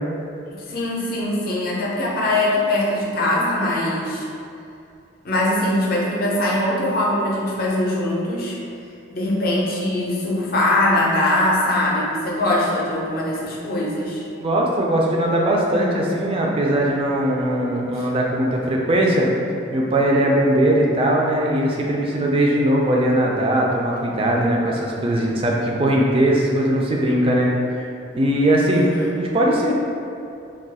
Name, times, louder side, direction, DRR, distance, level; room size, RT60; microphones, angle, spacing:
voice 1, 0.5-4.3 5.2-8.6 9.1-14.3 17.9-18.1 28.7-29.1, left 1 dB, 45° left, -4 dB, 0.5 m, -22 dB
voice 2, 14.4-19.3 19.7-27.5 27.8-27.9 28.1-28.9 29.2-29.7, right 1 dB, 30° right, -2 dB, 0.3 m, -20 dB
2.3 x 2.3 x 3.9 m, 2.6 s
head